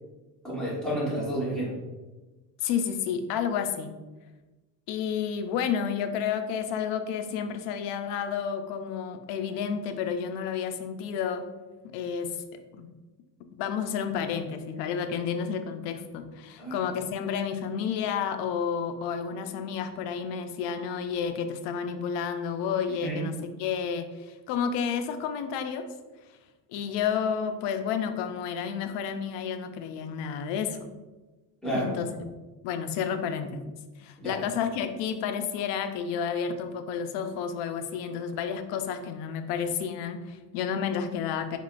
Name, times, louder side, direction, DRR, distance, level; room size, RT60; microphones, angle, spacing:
voice 1, 0.4-1.8 16.6-16.8 23.0-23.2 31.6-32.0 34.2-34.4, right 1 dB, ahead, -8 dB, 1.2 m, -30 dB
voice 2, 2.6-3.9 4.9-11.5 11.8-12.4 12.7-12.9 13.6-23.3 23.6-25.9 26.7-30.9 31.7-32.3 32.6-33.6 34.0-41.6, left 7 dB, 85° left, 8 dB, 0.6 m, -31 dB
4.7 x 3.6 x 2.4 m, 1.2 s
cardioid pair, 165°, 40 cm